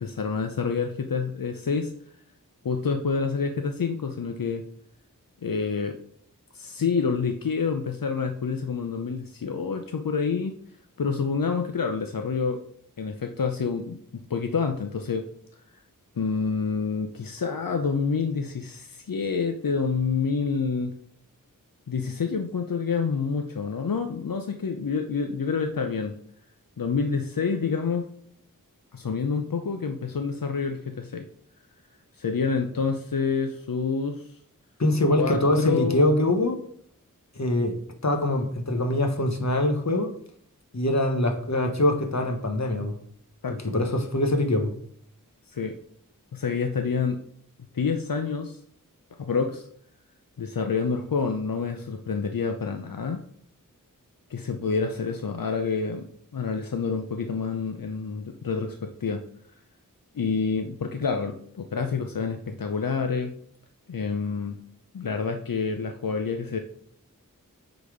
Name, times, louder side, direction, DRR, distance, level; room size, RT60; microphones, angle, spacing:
voice 1, 0.0-1.9 2.6-4.7 5.4-6.0 6.5-10.6 11.0-12.6 13.0-14.0 14.3-15.3 16.2-20.9 21.9-26.2 26.8-28.1 28.9-31.3 32.1-34.4 35.1-36.1 43.4-43.7 45.5-45.8 46.3-47.2 47.7-48.6 49.2-49.7 50.4-53.2 54.3-59.2 60.1-63.3 63.9-64.6 64.9-66.6, left 5 dB, 85° left, 5 dB, 0.6 m, -28 dB
voice 2, 34.8-36.6 37.3-37.7 38.0-40.1 40.7-43.0 43.7-44.7, left 1 dB, 55° left, 4 dB, 1.2 m, -23 dB
8.4 x 4.1 x 4.9 m, 0.62 s
wide cardioid pair, 45°, 33 cm